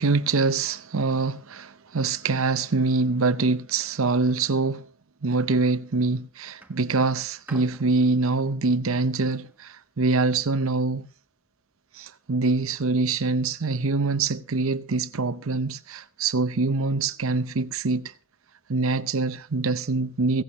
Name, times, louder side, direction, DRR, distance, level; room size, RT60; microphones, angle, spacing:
voice 1, 0.0-4.9 5.2-11.1 11.9-18.1 18.7-20.4, right 3 dB, 70° right, 0.7 m, -24 dB
sound 1, 5.7-6.0 6.6-9.8 10.7-10.8, right 1 dB, 10° right, 1.3 m, -51 dB
16.5 x 16.5 x 3.0 m
head